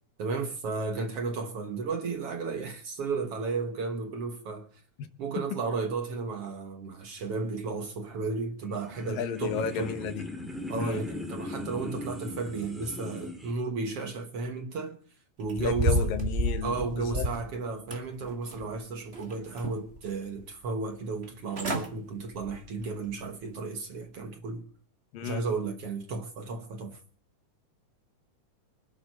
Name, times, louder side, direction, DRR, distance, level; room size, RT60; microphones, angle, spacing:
voice 1, 0.2-4.7 5.2-10.1 10.7-15.0 15.4-16.1 16.6-24.6 25.2-27.0, right 4 dB, 60° right, 1.8 m, -33 dB
sound 1, 8.6-13.5, left 1 dB, ahead, 1.8 m, -39 dB
voice 2, 9.1-10.2 10.7-11.0 15.6-17.3 25.1-25.4, left 8 dB, 90° left, 3.0 m, -33 dB
sound 2, 15.4-17.5 17.9-18.7 19.1-20.0 20.4-20.5 21.2-21.3 21.5-21.9 22.3-22.6 23.1-23.2, right 1 dB, 25° right, 1.7 m, -30 dB
25.5 x 11.0 x 4.4 m
omnidirectional pair, 3.9 m